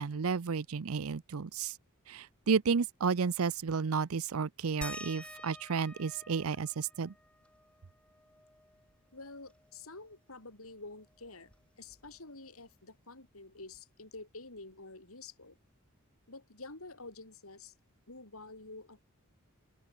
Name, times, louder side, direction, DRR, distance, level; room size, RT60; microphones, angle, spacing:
voice 1, 0.0-1.8 2.1-7.1, right 5 dB, 75° right, 0.6 m, -32 dB
sound 1, 4.8-9.9 10.3-10.4 10.7-12.5 13.7-13.8 14.6-14.7, left 1 dB, 5° left, 2.1 m, -50 dB
voice 2, 9.1-11.5 11.8-15.6 16.3-17.7 18.1-19.0, left 3 dB, 75° left, 5.6 m, -49 dB
open air
head